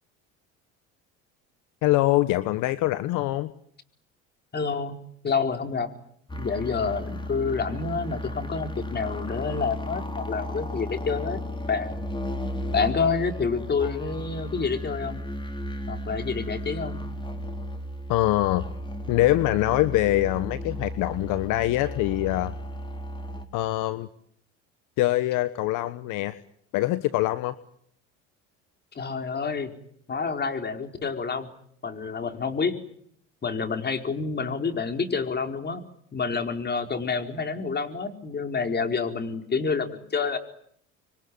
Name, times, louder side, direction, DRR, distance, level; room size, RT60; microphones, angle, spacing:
voice 1, 1.8-3.5 18.1-18.6 19.1-22.5 23.5-24.1 25.0-26.4 26.7-27.6, left 16 dB, 70° left, 14 dB, 1.3 m, -24 dB
voice 2, 4.5-5.0 5.2-5.9 6.4-11.4 11.7-11.9 12.7-15.2 15.9-17.0 28.9-29.7 30.1-31.5 31.8-32.8 33.4-35.8 36.1-40.4, left 5 dB, 30° left, 6 dB, 4.5 m, -28 dB
sound 1, 6.3-23.4, left 1 dB, 15° left, 3.9 m, -34 dB
26.5 x 23.0 x 9.6 m, 0.67 s
supercardioid pair, 90°, 32 cm